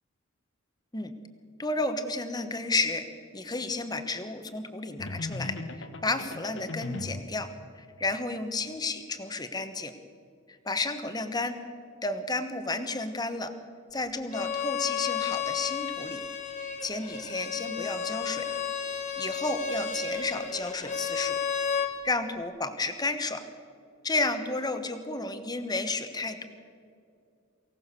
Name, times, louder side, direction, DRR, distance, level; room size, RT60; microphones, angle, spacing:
voice 1, 1.6-3.1 3.3-7.5 7.8-9.9 10.5-11.6 12.0-13.5 13.9-16.2 16.6-18.5 19.2-21.4 22.0-23.4 24.0-26.5, left 3 dB, 20° left, 9 dB, 1.2 m, -32 dB
sound 1, 5.0-7.4, left 2 dB, 60° left, 1.2 m, -38 dB
Bowed string instrument, 14.3-21.9, left 7 dB, 35° left, 1.7 m, -32 dB
23.5 x 17.0 x 6.8 m, 2.4 s
head